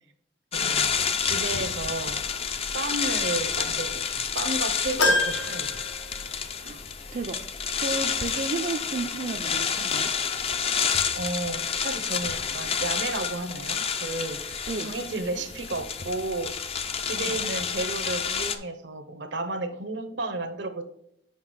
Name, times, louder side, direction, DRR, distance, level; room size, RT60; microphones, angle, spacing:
sound 1, 0.5-18.6, left 6 dB, 35° left, 0.5 m, -29 dB
voice 1, 0.5-2.3 2.7-5.7 11.1-20.8, right 2 dB, 75° right, 10 dB, 0.8 m, -33 dB
sound 2, 5.0-6.6 7.1-7.2 8.4-8.5, left 2 dB, 85° left, 1.2 m, -26 dB
voice 2, 7.8-10.1 14.7-14.9 17.2-17.3, right 3 dB, 45° right, 4 dB, 0.4 m, -33 dB
5.8 x 4.9 x 4.6 m, 0.77 s
head